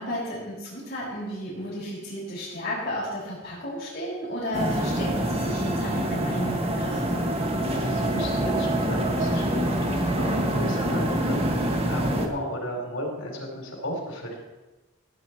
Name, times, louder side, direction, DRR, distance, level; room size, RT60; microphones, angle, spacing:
voice 1, 0.0-7.1, equal, 45° left, -10 dB, 5.1 m, -33 dB
sound 1, 4.5-12.3, right 1 dB, 30° right, 1.3 m, -26 dB
voice 2, 7.7-14.4, equal, 70° left, 0 dB, 3.8 m, -34 dB
16.0 x 9.3 x 4.5 m, 1.2 s
head